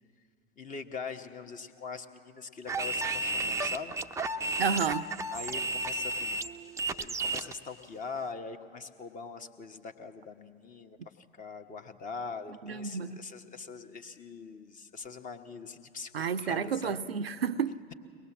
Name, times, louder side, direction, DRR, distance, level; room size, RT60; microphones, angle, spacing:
voice 1, 0.6-3.9 4.3-4.5 5.3-6.4 6.7-11.0 11.4-17.0, left 5 dB, 25° left, 1.3 m, -42 dB
sound 1, 2.7-7.5, right 2 dB, 10° right, 0.6 m, -32 dB
voice 2, 4.6-5.1 12.5-13.3 16.1-17.8, right 6 dB, 80° right, 0.6 m, -31 dB
23.0 x 20.0 x 7.3 m
figure-of-eight pair, 85°, 30 cm